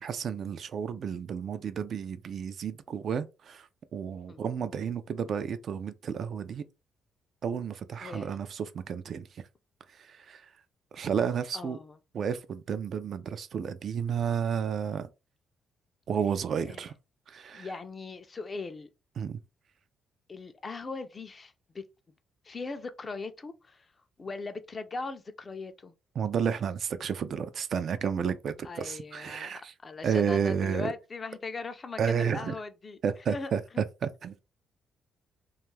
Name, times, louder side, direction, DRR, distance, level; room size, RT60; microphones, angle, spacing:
voice 1, 0.0-6.7 7.4-9.4 10.0-10.4 10.9-11.8 12.1-15.1 16.1-16.9 17.3-17.7 19.2-19.4 26.2-29.7 30.0-30.9 32.0-32.5 33.0-34.4, right 7 dB, 60° right, 0.3 m, -31 dB
voice 2, 8.0-8.3 11.5-12.0 16.6-16.9 17.5-18.9 20.3-21.8 22.4-23.9 24.2-26.0 28.6-33.0 33.3-33.8, left 3 dB, 35° left, 0.4 m, -39 dB
2.5 x 2.3 x 3.1 m
cardioid pair, 90°, 0 cm